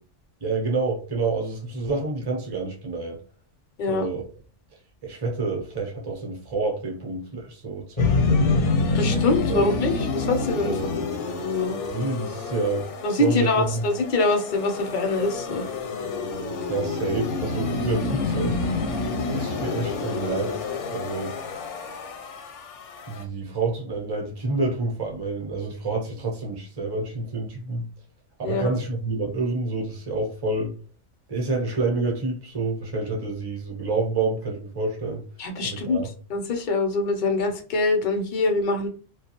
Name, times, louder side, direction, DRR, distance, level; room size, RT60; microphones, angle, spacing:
voice 1, 0.4-3.2 3.9-4.2 5.0-8.6 9.5-9.7 10.6-11.1 11.9-12.9 13.2-13.9 16.7-18.6 19.3-20.6 20.9-21.3 23.1-27.9 28.4-30.7 31.3-35.2 35.6-36.1, right 3 dB, 25° right, 0.6 m, -28 dB
sound 1, 8.0-23.2, left 3 dB, 75° left, 0.9 m, -28 dB
voice 2, 8.9-11.0 11.4-11.8 13.0-15.7 28.4-28.7 35.4-36.0 36.3-38.9, left 3 dB, 55° left, 0.6 m, -24 dB
2.3 x 2.2 x 2.8 m
omnidirectional pair, 1.2 m